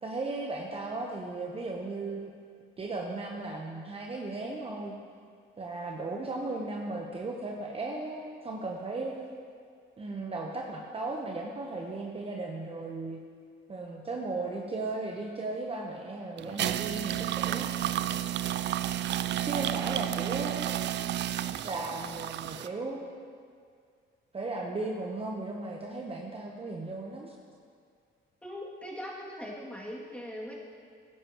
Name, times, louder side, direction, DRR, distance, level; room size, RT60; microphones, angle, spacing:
voice 1, 0.0-2.3 2.8-5.0 5.6-9.3 10.0-13.2 13.7-17.7 19.5-20.7 21.6-23.4 24.3-27.4, right 2 dB, 30° right, 0 dB, 0.9 m, -36 dB
sound 1, 16.4-22.7, right 12 dB, 65° right, 0.4 m, -31 dB
voice 2, 28.4-30.5, equal, 5° left, -4 dB, 2.4 m, -40 dB
15.0 x 10.5 x 3.0 m, 2.1 s
cardioid pair, 90°, 20 cm